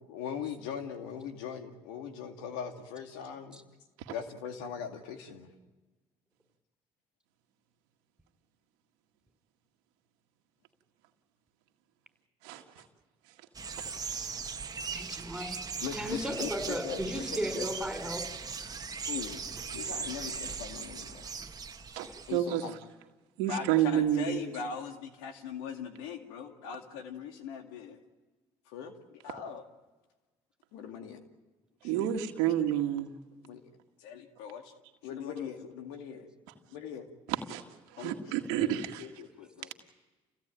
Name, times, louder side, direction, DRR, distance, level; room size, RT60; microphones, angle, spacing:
voice 1, 0.0-3.6 4.1-5.5 15.8-17.7 19.1-19.4 19.7-21.3 22.3-22.8 23.5-28.0 28.7-29.6 30.7-31.2 31.8-32.1 33.4-33.7 34.0-34.7 35.0-36.3 36.7-37.1 38.0-39.7, left 7 dB, 90° left, 6 dB, 2.3 m, -40 dB
voice 2, 12.4-12.8 22.0-22.6 23.4-24.4 31.8-33.1 37.5-37.6 37.9-39.0, right 11 dB, 90° right, 4 dB, 1.9 m, -29 dB
sound 1, 13.5-22.4, right 5 dB, 35° right, 1.5 m, -39 dB
voice 3, 14.9-15.6 16.0-18.2, equal, 5° right, 7 dB, 5.3 m, -35 dB
29.0 x 16.5 x 9.1 m, 1.2 s
supercardioid pair, 70°, 11 cm